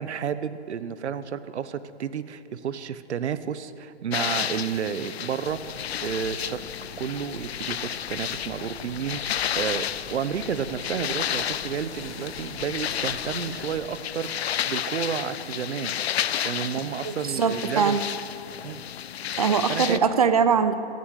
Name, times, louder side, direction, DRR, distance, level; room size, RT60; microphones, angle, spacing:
voice 1, 0.0-6.6 7.0-16.0 16.4-18.0 18.6-18.8 19.7-20.0, right 8 dB, 75° right, 14 dB, 0.9 m, -31 dB
tennessee river waves, 4.1-20.0, left 10 dB, 65° left, 0.7 m, -32 dB
sound 1, 5.5-13.8, left 4 dB, 80° left, 1.8 m, -44 dB
voice 2, 17.0-18.0 19.4-20.7, right 6 dB, 35° right, 12 dB, 0.5 m, -22 dB
14.5 x 14.0 x 6.4 m, 2.8 s
hypercardioid pair, 170°, 34 cm